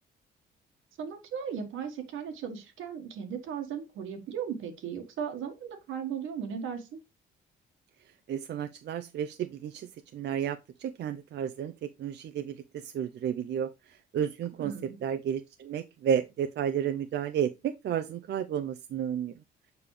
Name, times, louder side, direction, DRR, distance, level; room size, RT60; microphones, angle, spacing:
voice 1, 1.0-7.0 14.6-15.0, right 7 dB, 85° right, 1.6 m, -37 dB
voice 2, 8.3-14.7 15.0-19.3, right 8 dB, 60° right, 0.6 m, -32 dB
6.9 x 5.3 x 3.2 m
cardioid pair, 90°, 20 cm